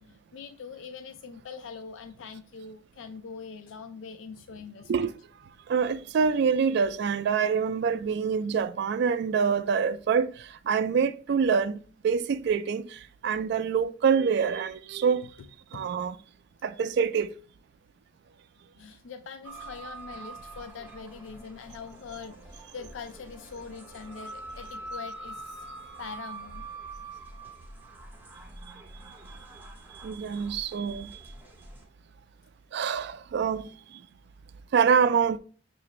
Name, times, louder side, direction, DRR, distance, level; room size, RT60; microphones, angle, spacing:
voice 1, 0.0-4.9 15.7-15.9 18.8-25.7 26.0-26.6, left 5 dB, 80° left, 0.4 m, -43 dB
voice 2, 5.7-10.3 10.7-12.9 13.2-15.3 15.7-16.2 16.6-17.3 30.0-31.1 32.7-33.7 34.7-35.4, right 6 dB, 60° right, 0.3 m, -25 dB
sound 1, 19.4-31.8, right 2 dB, 10° right, 0.9 m, -44 dB
5.8 x 2.5 x 3.0 m
head